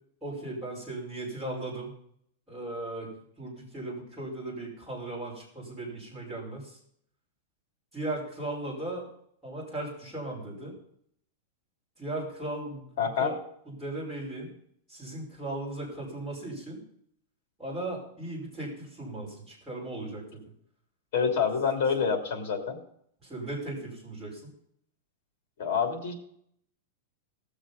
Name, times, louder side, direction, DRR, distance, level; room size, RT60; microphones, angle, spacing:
voice 1, 0.2-1.9 2.5-6.8 7.9-9.1 9.4-10.7 12.0-13.3 13.7-14.5 14.9-16.8 17.6-20.4 23.2-24.5, right 2 dB, 5° right, -8 dB, 5.3 m, -37 dB
voice 2, 13.0-13.3 21.1-22.8 25.6-26.1, left 6 dB, 45° left, 5 dB, 3.1 m, -27 dB
18.0 x 7.1 x 5.4 m, 0.68 s
supercardioid pair, 175°, 0 cm